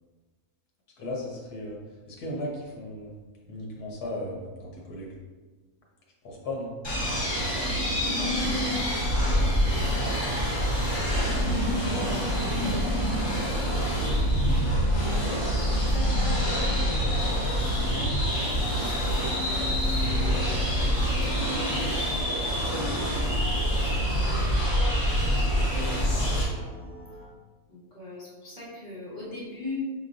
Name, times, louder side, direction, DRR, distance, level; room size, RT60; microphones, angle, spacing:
voice 1, 1.0-1.8 2.1-3.1 3.5-5.1 6.2-6.8 12.0-12.3 12.9-13.4, left 1 dB, 90° left, -2 dB, 1.5 m, -36 dB
sound 1, 6.8-26.4, equal, 20° left, 1.0 m, -26 dB
voice 2, 8.1-10.3 15.0-26.9 27.7-29.9, left 2 dB, 45° left, -8 dB, 1.4 m, -41 dB
sound 2, 13.1-27.3, left 2 dB, 55° right, 1.8 m, -41 dB
6.3 x 3.1 x 2.5 m, 1.3 s
omnidirectional pair, 1.6 m